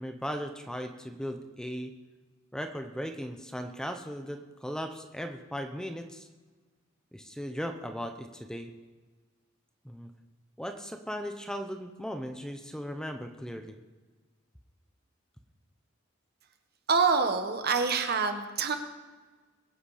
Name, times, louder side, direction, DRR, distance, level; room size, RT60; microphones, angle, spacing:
voice 1, 0.0-1.9 2.5-6.3 7.1-8.7 9.8-10.1 10.6-13.7, equal, 5° left, 6 dB, 0.7 m, -37 dB
voice 2, 16.9-18.8, right 5 dB, 50° right, 7 dB, 1.4 m, -26 dB
22.0 x 8.0 x 5.0 m, 1.3 s
head